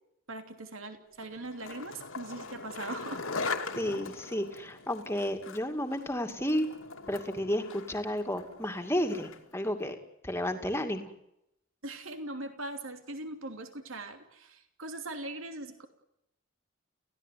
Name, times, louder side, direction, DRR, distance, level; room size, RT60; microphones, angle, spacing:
voice 1, 0.3-3.2 11.8-15.9, right 2 dB, 70° right, 7 dB, 3.0 m, -40 dB
Skateboard, 1.2-9.6, left 4 dB, 80° left, 2.4 m, -40 dB
voice 2, 3.8-6.7 7.1-10.0 10.2-11.1, equal, 10° left, 6 dB, 2.4 m, -32 dB
30.0 x 16.0 x 9.3 m, 0.83 s
head